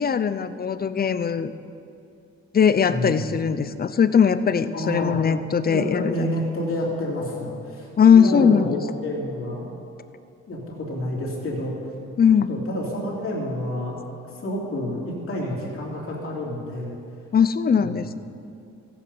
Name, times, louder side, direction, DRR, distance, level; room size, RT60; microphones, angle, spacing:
voice 1, 0.0-1.5 2.5-6.3 8.0-8.8 12.2-12.5 17.3-18.2, left 7 dB, 30° left, 13 dB, 0.5 m, -19 dB
voice 2, 2.9-3.3 4.7-5.2 5.7-9.7 10.5-11.8 12.5-14.0 14.4-17.0 17.7-18.0, left 1 dB, 45° left, -3 dB, 2.9 m, -29 dB
14.5 x 8.5 x 5.6 m, 2.6 s
cardioid pair, 90°, 30 cm